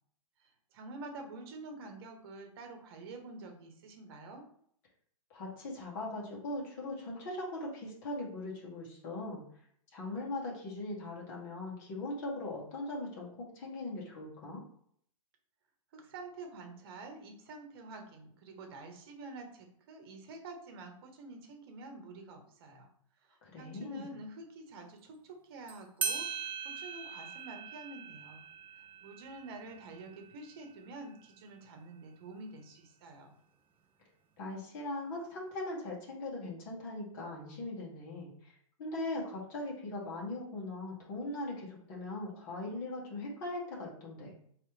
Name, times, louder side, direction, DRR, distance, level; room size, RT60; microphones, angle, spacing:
voice 1, 0.7-4.4 15.9-22.9 23.3-28.4 29.0-33.3, right 2 dB, 45° right, 4 dB, 1.2 m, -48 dB
voice 2, 5.3-9.4 9.9-14.6 23.4-24.2 34.4-38.5 38.8-44.3, left 2 dB, 35° left, -4 dB, 1.9 m, -40 dB
sound 1, 25.7-25.8 26.0-31.1, right 6 dB, 10° right, 0.3 m, -41 dB
4.6 x 3.3 x 3.3 m, 0.65 s
hypercardioid pair, 155°, 18 cm